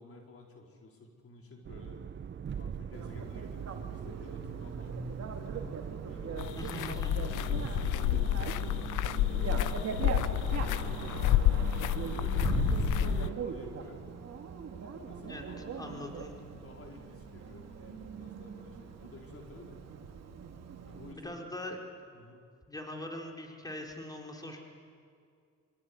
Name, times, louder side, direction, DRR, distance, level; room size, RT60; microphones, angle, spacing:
voice 1, 0.0-2.0 2.6-3.7 3.9-6.6 7.2-8.9 9.1-11.8 12.5-14.0 14.9-16.1 16.6-19.8 20.8-21.4 22.1-22.4, left 2 dB, 50° left, 1 dB, 4.1 m, -52 dB
sound 1, 1.7-13.3, right 8 dB, 40° right, 0.8 m, -40 dB
Bicycle, 2.9-21.1, right 6 dB, 60° right, 2.6 m, -41 dB
sound 2, 6.4-13.3, left 13 dB, 85° left, 0.9 m, -29 dB
voice 2, 6.6-7.1 15.3-15.4 15.7-16.4 21.1-21.8 22.7-24.6, left 1 dB, 10° left, 1 dB, 4.5 m, -42 dB
25.5 x 23.5 x 9.7 m, 2.3 s
cardioid pair, 90°, 30 cm